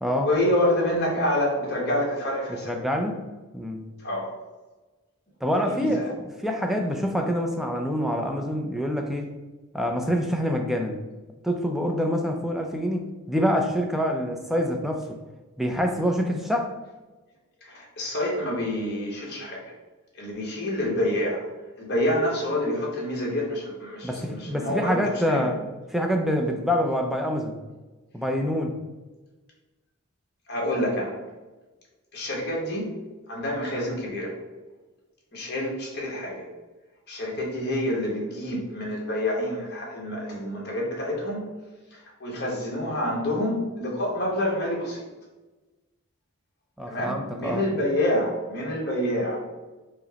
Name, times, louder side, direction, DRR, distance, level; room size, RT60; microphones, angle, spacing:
voice 1, 0.2-2.8 4.0-4.3 5.6-6.1 17.6-19.7 20.1-21.5 21.8-25.0 25.3-25.5 30.5-31.1 32.1-32.9 33.3-34.4 35.3-36.5 37.1-41.4 41.9-45.0 46.9-49.4, left 1 dB, 50° left, -2 dB, 1.2 m, -27 dB
voice 2, 2.6-3.2 3.5-3.9 5.4-9.3 9.7-11.0 11.4-15.2 15.6-16.7 24.0-27.5 28.1-28.8 46.8-47.6, equal, ahead, 3 dB, 0.4 m, -26 dB
4.8 x 2.1 x 3.9 m, 1.2 s
head